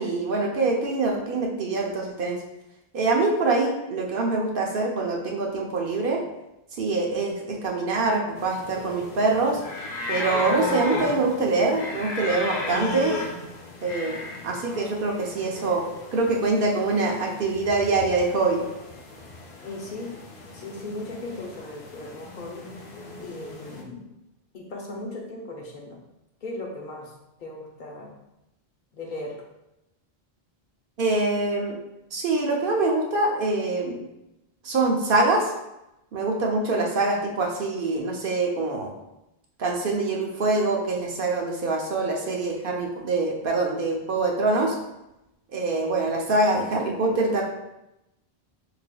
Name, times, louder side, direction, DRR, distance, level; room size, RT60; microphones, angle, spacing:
voice 1, 0.0-2.4 2.9-6.2 6.7-9.6 10.1-13.1 13.8-18.7 31.0-31.8 32.1-34.0 34.6-35.5 36.1-38.9 39.6-44.8 45.5-47.4, right 3 dB, 60° right, 0 dB, 0.8 m, -24 dB
sound 1, 8.4-23.8, left 2 dB, 90° left, 0.9 m, -35 dB
voice 2, 19.6-20.1 20.5-22.7 23.2-24.2 24.5-26.0 26.4-27.1 27.4-28.2 28.9-29.3, left 2 dB, 55° left, -1 dB, 0.7 m, -37 dB
4.7 x 3.3 x 2.2 m, 0.91 s
omnidirectional pair, 1.0 m